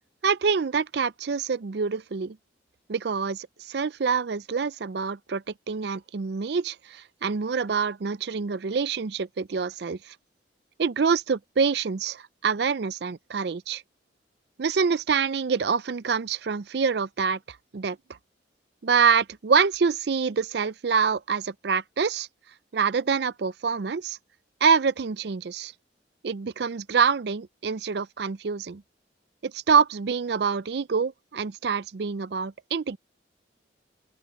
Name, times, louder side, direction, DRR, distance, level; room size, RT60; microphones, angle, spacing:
voice 1, 0.2-2.4 2.9-10.0 10.8-13.8 14.6-18.0 18.8-22.3 22.7-24.2 24.6-25.7 26.2-28.8 29.4-33.0, right 5 dB, 60° right, 0.5 m, -26 dB
open air
head